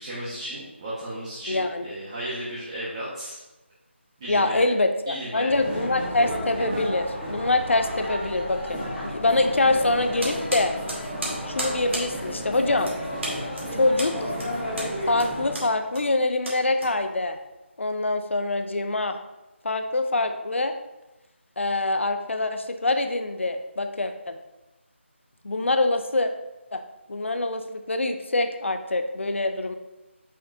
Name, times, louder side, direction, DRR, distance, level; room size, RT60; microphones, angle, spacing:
voice 1, 0.0-3.4 4.2-4.6 5.1-5.5, right 1 dB, 25° right, -11 dB, 1.5 m, -34 dB
voice 2, 1.5-1.9 4.3-10.7 11.5-12.9 13.8-14.3 15.1-17.4 17.8-19.2 19.6-20.7 21.6-24.3 25.4-26.3 26.7-26.8 27.1-29.7, left 2 dB, 70° left, 7 dB, 0.6 m, -25 dB
sound 1, 5.5-15.5, equal, 5° left, 1.4 m, -32 dB
sound 2, 10.2-17.4, right 1 dB, 70° right, 2.3 m, -35 dB
6.3 x 5.7 x 2.8 m, 1.0 s
figure-of-eight pair, 160°, 7 cm